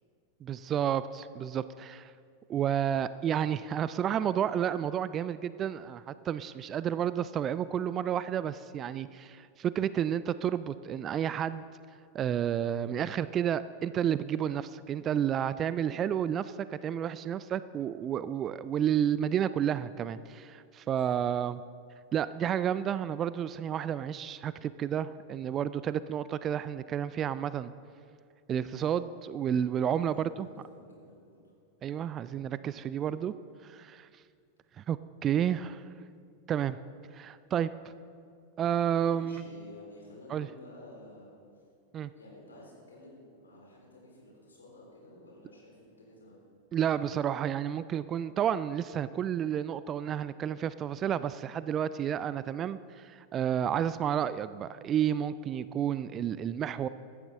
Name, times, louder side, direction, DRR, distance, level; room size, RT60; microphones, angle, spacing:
voice 1, 0.4-2.1 2.5-11.6 12.1-21.6 22.1-27.7 28.5-30.5 31.8-33.3 33.6-34.1 34.8-35.8 36.5-36.8 37.1-37.7 38.6-39.4 40.3-40.5 41.9-42.1 46.7-56.9, right 9 dB, 30° right, 16 dB, 0.3 m, -31 dB
voice 2, 20.8-21.2 29.8-31.5 39.1-41.4 42.1-46.4, left 1 dB, 75° left, -3 dB, 3.9 m, -52 dB
16.0 x 12.0 x 3.6 m, 2.2 s
figure-of-eight pair, 90°, 0 cm